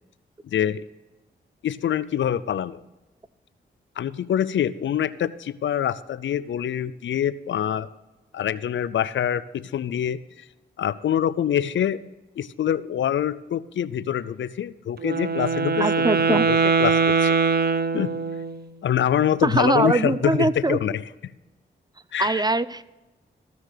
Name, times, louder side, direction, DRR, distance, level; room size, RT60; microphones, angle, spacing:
voice 1, 0.4-0.8 1.6-2.8 4.0-7.9 8.3-10.4 10.8-12.0 12.4-17.3 17.9-18.1 18.8-21.0 22.1-22.4, left 10 dB, 70° left, 17 dB, 0.5 m, -25 dB
Wind instrument woodwind instrument, 15.0-18.6, right 5 dB, 50° right, 1.0 m, -22 dB
voice 2, 15.8-16.5 19.4-20.8 22.2-22.9, right 2 dB, 20° right, 16 dB, 0.6 m, -22 dB
14.5 x 6.3 x 6.7 m, 1.0 s
supercardioid pair, 50°, 20 cm